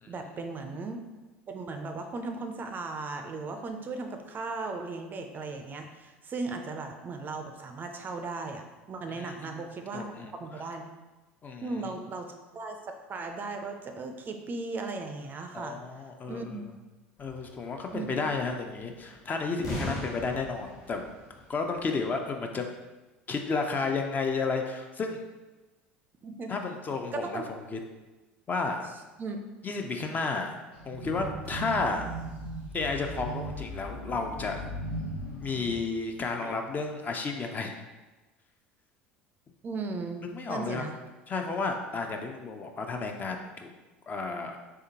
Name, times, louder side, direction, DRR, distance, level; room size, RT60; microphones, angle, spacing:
voice 1, 0.0-1.0 1.5-10.8 11.6-15.8 16.3-16.7 17.9-18.1 26.2-26.5 27.1-27.5 29.2-29.4 36.4-36.6 39.6-41.0, right 3 dB, 30° right, 5 dB, 0.4 m, -37 dB
voice 2, 9.1-9.5 9.9-10.3 11.4-11.7 15.5-16.6 17.2-21.0 21.5-22.7 23.3-25.2 26.5-27.4 27.7-27.8 28.5-28.9 29.6-30.6 30.9-32.1 32.7-34.7 35.4-37.8 40.2-40.8 41.3-43.7 44.1-44.6, left 4 dB, 30° left, 3 dB, 0.5 m, -32 dB
sound 1, 17.2-22.2, left 1 dB, 45° left, 1.4 m, -40 dB
sound 2, 30.7-35.8, right 1 dB, 90° left, 1.1 m, -38 dB
sound 3, 31.4-36.3 36.8-36.9, left 2 dB, 65° left, 1.1 m, -47 dB
3.5 x 3.4 x 2.8 m, 1.2 s
hypercardioid pair, 75°, 6 cm